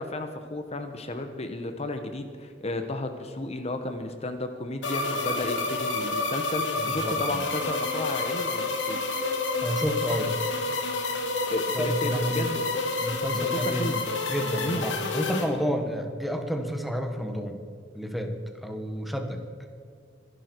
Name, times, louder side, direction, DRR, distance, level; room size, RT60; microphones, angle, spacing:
voice 1, 0.0-9.1 11.5-12.7 13.3-14.0 14.6-14.9, left 2 dB, 35° left, 7 dB, 1.1 m, -33 dB
sound 1, 4.8-15.4, left 3 dB, 85° left, 2.6 m, -29 dB
voice 2, 6.8-7.4 8.1-8.2 9.6-10.4 11.7-12.5 13.0-13.9 14.3-17.6 17.9-18.3 18.6-19.4, equal, ahead, 4 dB, 1.6 m, -30 dB
25.0 x 11.5 x 4.7 m, 2.2 s
head